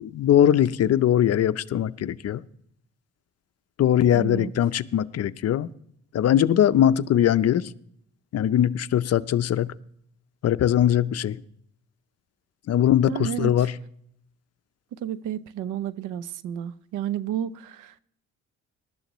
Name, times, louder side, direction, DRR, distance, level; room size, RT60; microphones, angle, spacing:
voice 1, 0.0-2.4 3.8-5.7 6.1-7.7 8.3-9.7 10.4-11.4 12.7-13.7, left 10 dB, 55° left, 14 dB, 0.6 m, -21 dB
voice 2, 4.1-4.5 13.1-13.5 15.0-18.0, right 10 dB, 85° right, 16 dB, 0.7 m, -31 dB
19.0 x 12.0 x 3.1 m, 0.70 s
cardioid pair, 90°, 30 cm